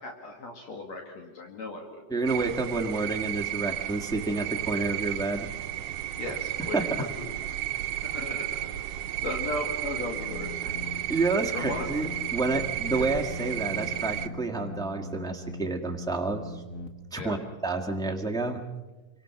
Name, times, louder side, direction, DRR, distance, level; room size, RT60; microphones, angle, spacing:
voice 1, 0.0-2.0 6.2-7.3 8.1-8.8 9.2-10.6 11.4-11.9 12.9-13.1 17.2-17.4, left 2 dB, 60° left, 1 dB, 3.4 m, -37 dB
voice 2, 2.1-5.5 6.2-6.3 6.7-6.9 10.6-10.7 11.1-16.6 17.1-18.6, right 3 dB, ahead, 1 dB, 0.8 m, -29 dB
sound 1, 2.3-14.3, right 12 dB, 65° right, 1.6 m, -33 dB
sound 2, 10.2-16.9, left 1 dB, 30° left, 1.7 m, -40 dB
26.5 x 25.5 x 6.0 m, 1.2 s
omnidirectional pair, 3.5 m